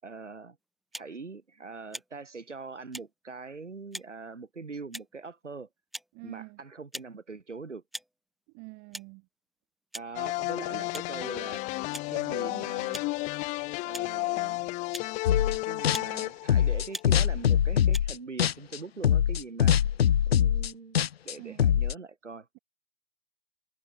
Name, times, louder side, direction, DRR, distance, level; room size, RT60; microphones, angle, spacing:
voice 1, 0.0-0.6 0.9-5.7 6.2-7.8 9.9-11.7 12.1-13.1 13.8-14.7 15.6-19.8 20.3-22.5, right 4 dB, 70° right, 4.8 m, -42 dB
sound 1, 0.9-1.1 1.9-2.1 2.9-3.1 3.9-4.1 4.9-5.2 5.9-6.1 6.9-7.1 7.9-8.1 8.9-9.1 9.9-10.1 10.9-11.1 11.9-12.1 12.9-13.1 13.9-14.1 14.9-15.1 15.9-16.1 16.9-17.1 17.9-18.1, right 1 dB, ahead, 0.5 m, -40 dB
voice 2, 6.1-6.6 8.5-9.3 21.4-21.9, right 32 dB, 25° right, 2.3 m, -46 dB
sound 2, 10.2-17.2, left 23 dB, 20° left, 1.2 m, -32 dB
sound 3, 15.3-15.6 15.8-18.8 19.0-21.9, left 9 dB, 55° left, 0.6 m, -23 dB
figure-of-eight pair, 120°, 37 cm